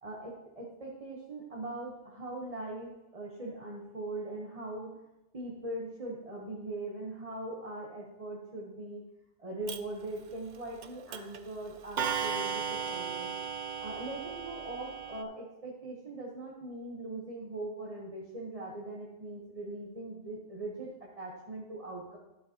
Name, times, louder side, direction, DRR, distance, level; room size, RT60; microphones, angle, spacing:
voice 1, 0.0-5.0 5.3-9.0 9.4-13.3 13.8-22.2, right 2 dB, 35° right, -4 dB, 1.1 m, -41 dB
Clock, 9.7-9.8 10.8-10.9 11.1-11.4 12.0-15.2, right 7 dB, 55° right, 0.6 m, -35 dB
11.5 x 7.7 x 2.8 m, 0.98 s
omnidirectional pair, 1.0 m